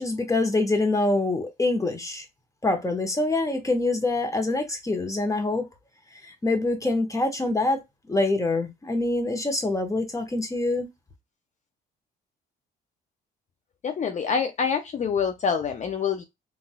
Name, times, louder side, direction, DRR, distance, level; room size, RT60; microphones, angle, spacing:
voice 1, 0.0-2.2 2.6-5.7 6.2-7.8 8.1-10.9, left 2 dB, 15° left, 1.0 m, -25 dB
voice 2, 13.8-16.3, left 6 dB, 40° left, 0.5 m, -26 dB
3.9 x 2.5 x 2.2 m
supercardioid pair, 70°, 19 cm